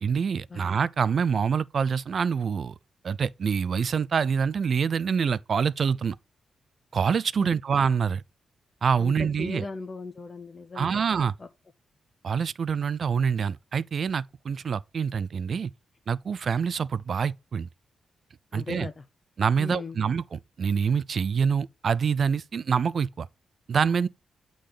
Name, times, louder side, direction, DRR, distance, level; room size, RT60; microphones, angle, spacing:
voice 1, 0.0-2.7 3.0-6.2 6.9-8.2 8.8-9.7 10.7-11.3 12.2-15.7 16.1-17.7 18.5-18.9 19.4-23.3 23.7-24.1, right 6 dB, 55° right, 0.4 m, -26 dB
voice 2, 9.4-11.5 18.5-18.9 19.6-20.0, left 3 dB, 35° left, 0.7 m, -38 dB
8.5 x 3.9 x 5.1 m
cardioid pair, 85°, 0 cm